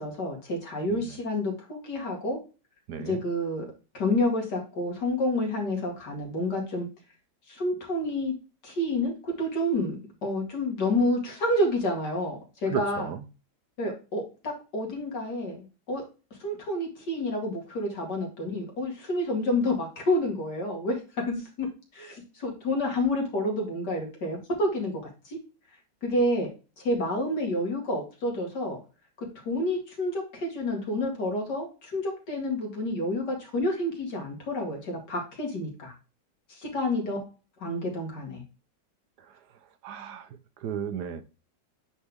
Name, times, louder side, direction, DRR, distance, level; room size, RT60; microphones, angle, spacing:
voice 1, 0.0-2.4 3.0-3.6 3.9-6.9 7.5-8.3 8.6-10.0 10.2-13.1 13.8-16.0 16.4-20.9 21.3-21.7 21.9-24.9 25.3-25.4 26.0-26.5 26.8-28.8 29.2-35.9 36.6-37.2 37.6-38.4, left 1 dB, 70° left, 2.8 m, -29 dB
voice 2, 2.9-3.2 12.7-13.2 39.8-40.3 40.6-41.2, right 8 dB, 70° right, 1.2 m, -34 dB
9.0 x 4.3 x 3.5 m
omnidirectional pair, 1.9 m